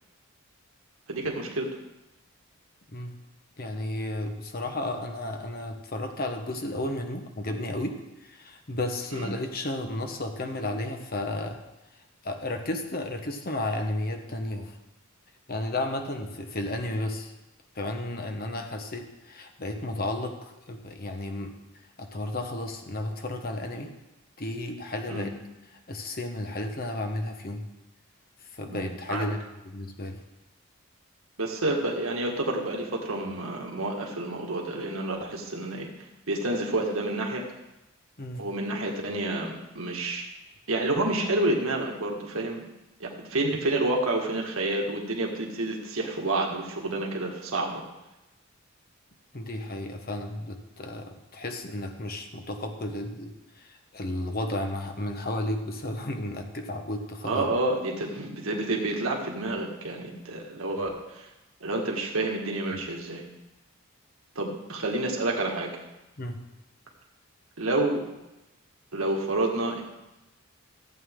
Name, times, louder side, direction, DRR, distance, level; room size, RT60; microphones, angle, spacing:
voice 1, 1.1-1.7 9.1-9.3 25.1-25.3 28.7-29.3 31.4-35.9 36.3-37.4 38.4-40.2 40.7-42.7 43.0-47.8 57.2-61.3 61.6-63.2 64.4-65.7 67.6-68.0 68.9-69.8, right 2 dB, 85° right, 0 dB, 1.8 m, -29 dB
voice 2, 3.6-11.6 12.2-14.8 15.5-17.3 17.7-21.6 22.0-23.9 24.4-25.3 25.9-27.7 28.5-29.4 29.6-30.2 38.2-38.5 49.3-57.4 66.2-66.4, left 1 dB, 45° left, 5 dB, 1.2 m, -33 dB
14.5 x 8.2 x 3.7 m, 0.98 s
head